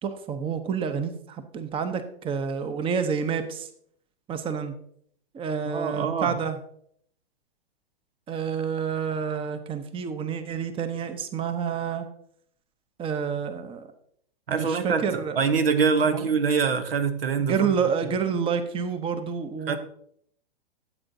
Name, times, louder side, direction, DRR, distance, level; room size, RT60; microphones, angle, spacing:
voice 1, 0.0-3.7 4.3-4.7 5.3-6.6 8.3-12.1 13.0-13.9 14.5-15.4 16.1-16.3 17.4-19.8, right 6 dB, 20° right, 10 dB, 0.8 m, -28 dB
voice 2, 5.7-6.4 14.5-17.8 19.7-19.8, right 5 dB, 80° right, 9 dB, 1.1 m, -24 dB
13.0 x 7.8 x 2.7 m, 0.66 s
hypercardioid pair, 115°, 29 cm